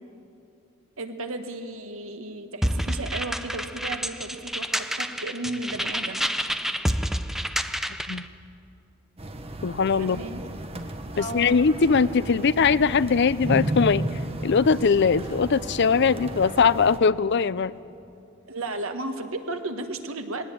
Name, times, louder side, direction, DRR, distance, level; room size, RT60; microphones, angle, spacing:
voice 1, 1.0-6.2 10.0-10.5 11.1-11.6 18.5-20.5, right 2 dB, 85° right, 7 dB, 1.5 m, -34 dB
sound 1, 2.6-8.2, equal, ahead, 0.6 m, -28 dB
sound 2, 9.2-17.0, right 1 dB, 30° right, 1.3 m, -33 dB
voice 2, 9.6-10.2 11.2-14.1 14.4-17.7, left 5 dB, 55° left, 17 dB, 0.5 m, -21 dB
20.5 x 18.0 x 9.0 m, 2.6 s
head